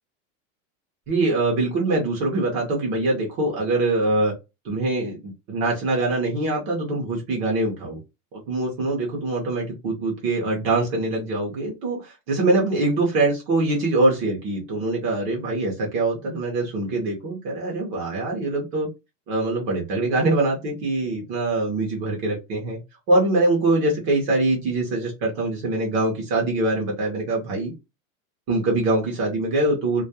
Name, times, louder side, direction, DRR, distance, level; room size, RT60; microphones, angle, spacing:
voice 1, 1.1-4.3 4.6-8.0 8.3-18.9 19.3-22.8 23.1-27.7 28.5-30.0, right 2 dB, 30° right, -1 dB, 0.6 m, -23 dB
2.3 x 2.1 x 2.7 m, 0.24 s
supercardioid pair, 180°, 40 cm